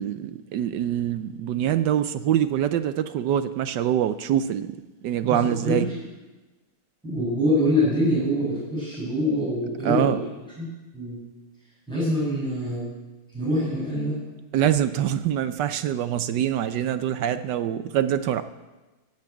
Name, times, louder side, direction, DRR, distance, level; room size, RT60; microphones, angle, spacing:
voice 1, 0.0-4.7 5.0-5.9 9.8-10.2 14.5-18.4, right 10 dB, 70° right, 12 dB, 1.1 m, -24 dB
voice 2, 5.2-5.8 7.0-10.2 10.6-10.7 10.9-11.2 11.9-12.9 13.3-14.2, left 1 dB, ahead, -8 dB, 6.0 m, -25 dB
16.0 x 6.1 x 8.9 m, 1.1 s
omnidirectional pair, 2.2 m